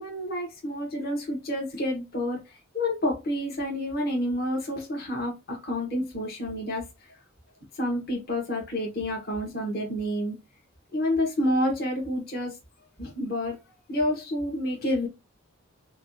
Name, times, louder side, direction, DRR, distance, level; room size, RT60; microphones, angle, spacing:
voice 1, 0.0-2.4 2.7-6.8 7.8-10.4 10.9-12.5 13.0-13.5 13.9-15.1, left 1 dB, 45° left, -2 dB, 1.3 m, -29 dB
5.6 x 2.4 x 2.7 m, 0.25 s
head